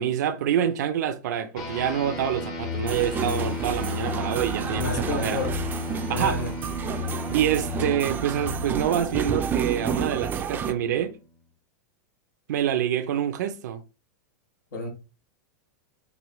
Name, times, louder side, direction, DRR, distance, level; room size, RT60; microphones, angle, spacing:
voice 1, 0.0-5.4 6.1-6.4 7.3-11.2 12.5-13.8, right 10 dB, 75° right, 0.5 m, -26 dB
sound 1, 1.6-11.3, left 4 dB, 40° left, 1.1 m, -34 dB
sound 2, 2.9-10.7, right 8 dB, 20° right, 0.4 m, -31 dB
voice 2, 4.6-5.6 6.1-6.5 14.7-14.9, left 2 dB, 85° left, 1.8 m, -31 dB
6.0 x 2.8 x 3.0 m
hypercardioid pair, 130°, 10 cm